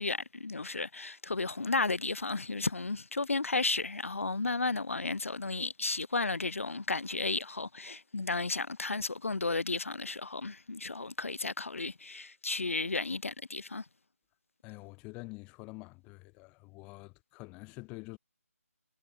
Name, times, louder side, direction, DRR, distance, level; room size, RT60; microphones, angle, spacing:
voice 1, 0.0-13.8, left 3 dB, 60° left, 2.7 m, -33 dB
voice 2, 14.6-18.2, left 26 dB, 15° left, 2.4 m, -47 dB
figure-of-eight pair, 150°, 8 cm